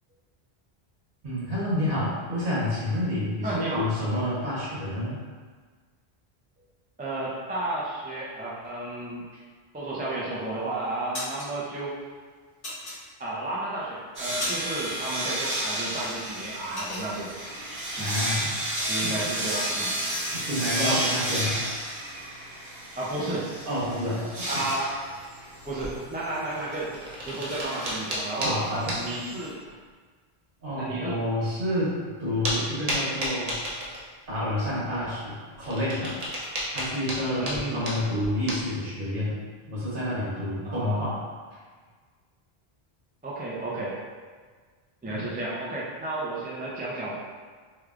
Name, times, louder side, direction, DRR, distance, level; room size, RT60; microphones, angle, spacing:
voice 1, 1.2-5.2 18.0-18.6 18.9-19.2 20.2-21.6 23.6-24.6 28.4-29.0 29.3-29.4 30.6-33.5 34.3-36.1 36.7-39.4 39.6-41.2 45.1-45.3, left 1 dB, 55° right, -9 dB, 1.3 m, -29 dB
voice 2, 3.4-3.9 7.0-9.3 9.7-11.9 13.2-17.3 18.0-18.1 18.9-19.9 20.8-21.2 23.0-23.5 24.4-25.0 25.7-26.9 27.2-29.6 30.8-31.1 37.4-37.8 40.6-41.1 43.2-44.0 45.0-47.1, right 2 dB, 15° right, -6 dB, 0.3 m, -32 dB
sound 1, 10.1-10.5 10.9-11.5 12.6-13.5 13.9-14.9 15.2-15.4 15.8-17.5 17.9-18.0 18.3-19.1, left 1 dB, 50° left, 1.4 m, -36 dB
sound 2, 14.2-29.5, right 1 dB, 75° right, 1.4 m, -32 dB
sound 3, 25.6-26.1 26.8-28.5 28.9-29.0 29.7-29.8 31.4-31.5 32.4-32.6 32.9-34.4 35.5-38.7, equal, 40° right, 0.8 m, -32 dB
3.3 x 3.1 x 2.4 m, 1.5 s
omnidirectional pair, 1.1 m